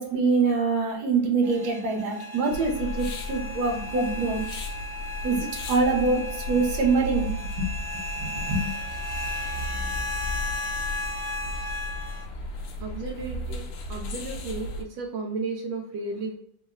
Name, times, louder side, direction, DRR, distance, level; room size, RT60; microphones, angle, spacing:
voice 1, 0.0-4.4 5.2-7.7 8.2-8.7, right 4 dB, 65° right, 1 dB, 1.4 m, -25 dB
sound 1, 1.4-12.2, left 1 dB, 25° right, 0.5 m, -35 dB
sound 2, 2.5-14.8, left 1 dB, 80° left, 1.3 m, -35 dB
voice 2, 12.8-13.6 13.9-16.4, right 3 dB, 80° right, 0 dB, 1.3 m, -33 dB
3.8 x 2.0 x 3.6 m, 0.68 s
omnidirectional pair, 2.0 m